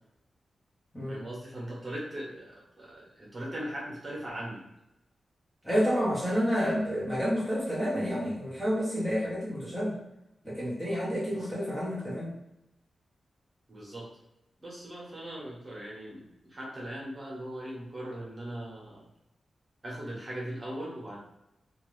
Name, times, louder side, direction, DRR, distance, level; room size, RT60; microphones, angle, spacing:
voice 1, 1.1-4.6 11.3-11.6 13.7-14.1 14.6-19.0 19.8-21.2, right 1 dB, 25° right, -5 dB, 1.1 m, -39 dB
voice 2, 5.6-10.0 10.4-12.3, equal, 10° left, -8 dB, 0.8 m, -29 dB
2.8 x 2.5 x 3.1 m, 0.86 s
wide cardioid pair, 135°, 0 cm